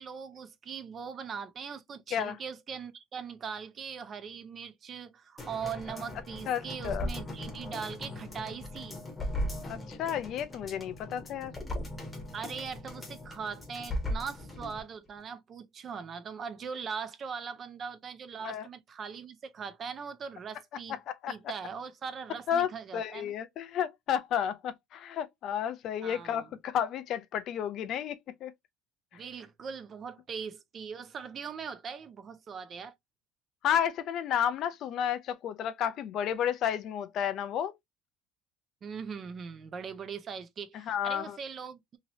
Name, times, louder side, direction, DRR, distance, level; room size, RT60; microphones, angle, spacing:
voice 1, 0.0-9.0 12.3-21.0 21.3-23.3 26.0-26.5 29.1-32.9 38.8-42.0, right 6 dB, 30° right, 0.4 m, -40 dB
sound 1, 5.4-14.8 15.2-15.3, left 1 dB, 10° left, 0.9 m, -38 dB
voice 2, 6.5-7.1 9.6-11.5 18.4-18.7 21.1-21.3 22.5-28.2 28.4-28.5 33.6-37.7 40.9-41.4, left 9 dB, 45° left, 0.4 m, -32 dB
2.9 x 2.8 x 2.6 m
cardioid pair, 155°, 0 cm